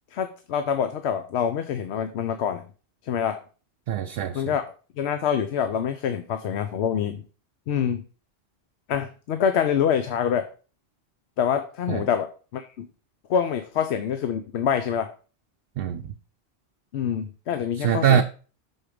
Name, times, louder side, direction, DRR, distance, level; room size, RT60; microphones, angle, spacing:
voice 1, 0.1-2.6 3.0-3.4 4.3-4.6 5.0-7.2 7.7-8.0 8.9-10.5 11.4-12.9 13.3-15.1 16.9-18.2, left 8 dB, 80° left, 0.9 m, -26 dB
voice 2, 3.9-4.6 11.9-12.1 15.8-16.1 17.8-18.2, right 9 dB, 65° right, 0.7 m, -23 dB
6.5 x 4.4 x 4.9 m
omnidirectional pair, 1.1 m